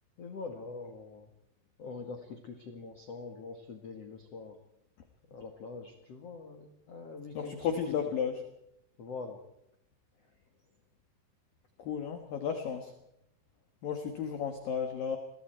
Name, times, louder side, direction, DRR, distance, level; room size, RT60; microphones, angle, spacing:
voice 1, 0.2-1.3 1.8-4.6 5.2-7.9 9.0-9.4 10.2-10.3, left 4 dB, 75° left, 5 dB, 1.4 m, -44 dB
voice 2, 7.3-8.4 11.8-12.9 13.8-15.2, left 7 dB, 60° left, 6 dB, 2.6 m, -33 dB
29.0 x 22.5 x 4.5 m, 0.81 s
omnidirectional pair, 5.7 m